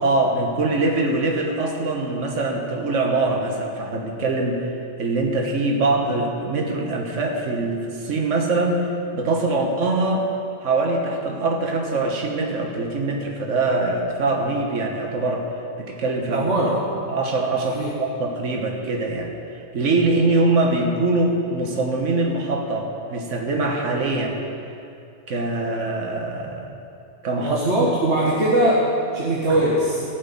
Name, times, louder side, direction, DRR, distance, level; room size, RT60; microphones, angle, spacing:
voice 1, 0.0-10.3 10.6-15.5 15.8-16.5 17.1-24.4 25.3-26.8 27.2-28.1 29.5-29.6, right 2 dB, 80° right, 1 dB, 1.5 m, -23 dB
voice 2, 16.3-16.7 17.6-17.9 27.4-28.8 29.1-30.0, right 1 dB, 65° right, -7 dB, 2.0 m, -21 dB
15.5 x 6.3 x 8.5 m, 2.6 s
omnidirectional pair, 1.3 m